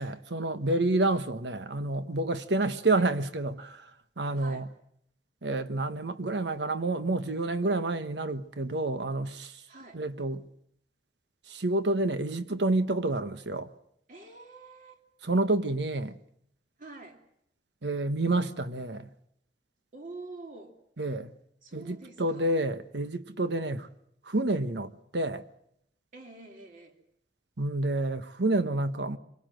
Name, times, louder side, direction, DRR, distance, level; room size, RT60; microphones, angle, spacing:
voice 1, 0.0-3.8 4.2-4.7 5.4-9.6 9.9-10.4 11.5-13.7 15.2-16.2 17.8-19.1 21.0-21.3 21.7-23.9 24.3-25.4 27.6-29.2, right 2 dB, 85° right, 1.2 m, -29 dB
voice 2, 4.3-4.7 9.7-10.0 14.1-15.0 16.8-17.2 19.9-20.8 21.6-22.6 26.1-27.0, right 3 dB, 45° right, 2.9 m, -47 dB
25.5 x 18.5 x 7.7 m
head